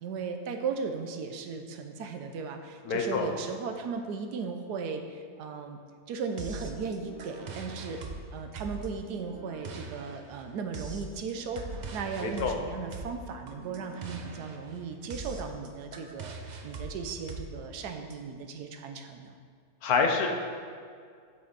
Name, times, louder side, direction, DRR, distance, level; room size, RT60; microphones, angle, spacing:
voice 1, 0.0-5.8 6.1-8.0 8.3-11.6 11.9-16.3 16.6-19.3, right 5 dB, 80° right, 6 dB, 1.3 m, -36 dB
voice 2, 2.9-3.3 12.2-12.5 19.8-20.3, left 5 dB, 70° left, 3 dB, 1.3 m, -26 dB
sound 1, 6.4-18.1, right 3 dB, 60° right, 0.4 m, -42 dB
7.9 x 7.9 x 4.0 m, 2.1 s
omnidirectional pair, 1.7 m